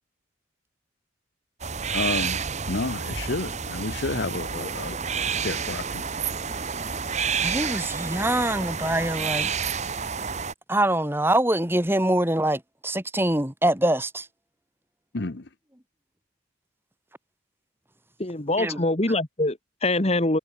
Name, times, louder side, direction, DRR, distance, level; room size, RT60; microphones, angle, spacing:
sound 1, 1.6-10.5, right 6 dB, 35° right, 1.3 m, -29 dB
voice 1, 1.9-4.9 5.4-6.0 15.1-15.4, left 2 dB, 55° left, 1.0 m, -30 dB
voice 2, 7.4-9.5 10.7-14.3 18.6-18.8, right 1 dB, 10° right, 2.1 m, -24 dB
voice 3, 18.2-20.4, left 2 dB, 30° left, 1.6 m, -24 dB
head